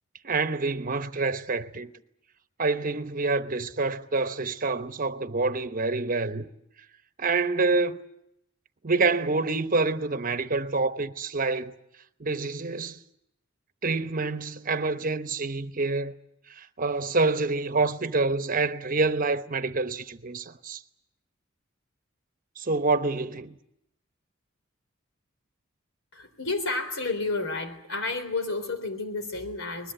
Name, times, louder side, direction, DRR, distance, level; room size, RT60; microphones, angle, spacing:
voice 1, 0.2-1.9 2.6-6.5 7.2-8.0 8.8-11.7 12.2-13.0 13.8-16.2 16.6-20.8 22.6-23.6, right 3 dB, 45° right, 1.0 m, -27 dB
voice 2, 26.1-29.9, left 3 dB, 80° left, 3.7 m, -31 dB
21.0 x 21.0 x 9.0 m
head